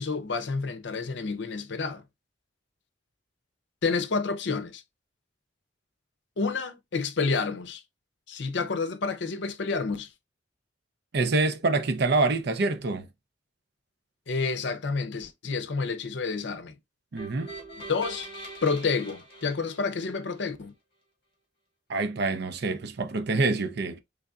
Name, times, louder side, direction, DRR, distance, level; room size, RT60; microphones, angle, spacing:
voice 1, 0.0-2.0 3.8-4.8 6.4-7.8 8.3-10.1 14.3-16.7 17.9-18.3 18.6-20.7, left 4 dB, 60° left, 0.6 m, -29 dB
voice 2, 11.1-13.1 17.1-17.5 21.9-24.0, right 3 dB, 55° right, 0.5 m, -26 dB
sound 1, 17.2-20.4, right 2 dB, 30° left, 1.8 m, -43 dB
3.7 x 3.4 x 2.3 m
head